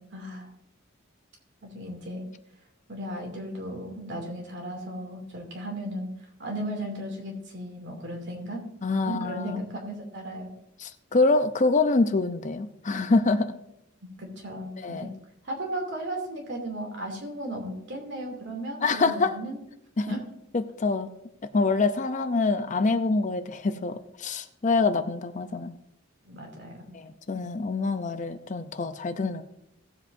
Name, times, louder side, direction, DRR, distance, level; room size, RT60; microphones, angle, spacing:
voice 1, 0.1-0.5 1.6-2.3 2.9-8.7 9.0-10.5 14.2-15.1 15.4-19.6 20.1-20.2 26.2-27.0, right 1 dB, 60° right, 1 dB, 2.7 m, -35 dB
voice 2, 8.8-9.6 10.8-13.5 14.8-15.1 18.8-19.4 20.0-20.1 20.5-21.1 21.5-25.7 26.9-29.4, left 3 dB, 40° left, 10 dB, 0.6 m, -25 dB
17.5 x 7.9 x 2.6 m, 0.81 s
head